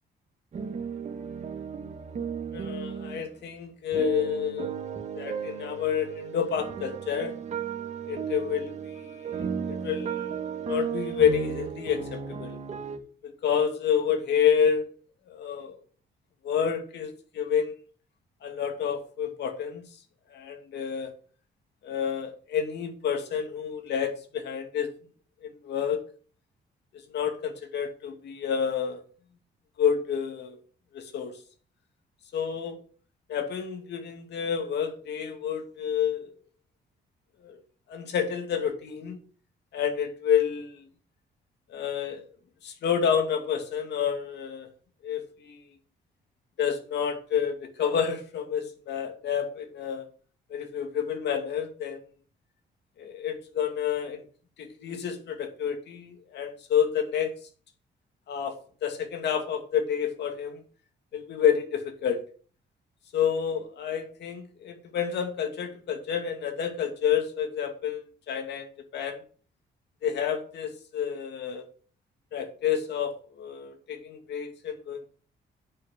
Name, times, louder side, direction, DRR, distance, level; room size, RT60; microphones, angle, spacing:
sound 1, 0.5-3.2 3.9-13.0, right 7 dB, 40° right, 1.5 m, -35 dB
voice 1, 2.5-4.7 5.1-7.4 8.1-12.6 13.2-14.9 15.3-15.8 16.4-17.7 18.4-19.8 20.3-21.1 21.8-24.9 25.4-26.0 27.1-29.0 29.8-30.6 30.9-31.4 32.3-32.8 33.3-36.3 37.4-37.6 37.9-39.2 39.7-40.9 41.7-42.3 42.6-44.7 45.0-45.6 46.6-50.1 50.5-52.0 53.0-54.2 54.6-57.3 58.3-60.6 61.1-62.2 63.1-69.2 70.0-71.7 72.3-75.1, left 8 dB, 70° left, 4 dB, 2.4 m, -29 dB
9.5 x 6.2 x 6.4 m, 0.42 s
cardioid pair, 160°, 18 cm